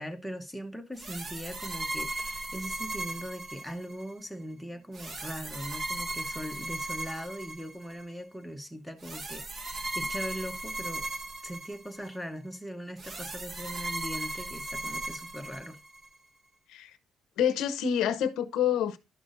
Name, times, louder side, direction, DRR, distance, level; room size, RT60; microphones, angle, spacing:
voice 1, 0.0-11.1 11.4-15.8, equal, ahead, 1.0 m, -40 dB
sound 1, 1.0-4.1 4.9-8.0 9.0-12.2 13.0-16.1, right 2 dB, 35° right, 1.2 m, -37 dB
voice 2, 17.4-19.0, left 9 dB, 85° left, 0.7 m, -27 dB
11.5 x 5.9 x 2.5 m
cardioid pair, 130°, 0 cm